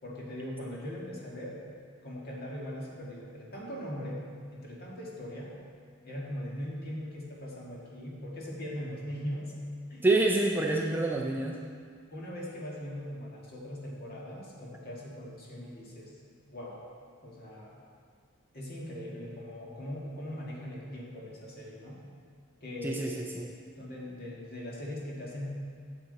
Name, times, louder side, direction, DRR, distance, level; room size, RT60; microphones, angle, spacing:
voice 1, 0.0-1.6 2.0-4.2 4.5-5.5 6.0-9.5 9.9-10.0 12.1-16.1 16.5-16.8 17.2-17.8 18.5-22.0 22.6-25.5, equal, 45° left, -4 dB, 1.7 m, -40 dB
voice 2, 10.0-11.6 22.8-23.5, right 2 dB, 10° right, -1 dB, 0.4 m, -27 dB
8.7 x 7.3 x 4.0 m, 2.1 s
head